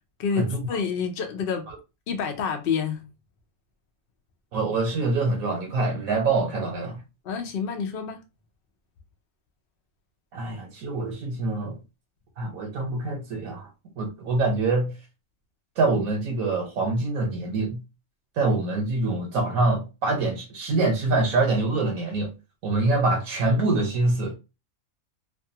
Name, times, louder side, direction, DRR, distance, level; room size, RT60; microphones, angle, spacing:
voice 1, 0.2-1.7 2.1-3.0 7.2-8.2, left 6 dB, 85° left, 0.5 m, -28 dB
voice 2, 4.5-7.0 10.3-11.8 12.4-13.7 14.0-14.9 15.8-17.8 18.4-22.3 22.6-24.3, right 3 dB, 70° right, 1.1 m, -25 dB
2.6 x 2.3 x 2.7 m
omnidirectional pair, 1.6 m